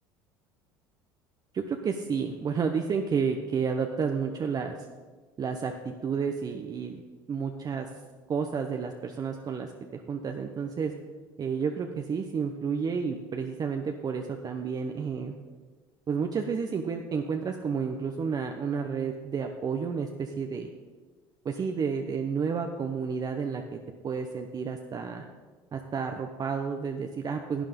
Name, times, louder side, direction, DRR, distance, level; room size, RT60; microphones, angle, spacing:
voice 1, 1.5-4.8 5.4-7.0 7.3-7.9 8.3-10.9 11.4-15.3 16.1-20.7 21.4-23.8 24.0-25.2 25.7-27.6, right 6 dB, 35° right, 4 dB, 0.9 m, -31 dB
11.0 x 9.0 x 5.2 m, 1.4 s
supercardioid pair, 80°, 11 cm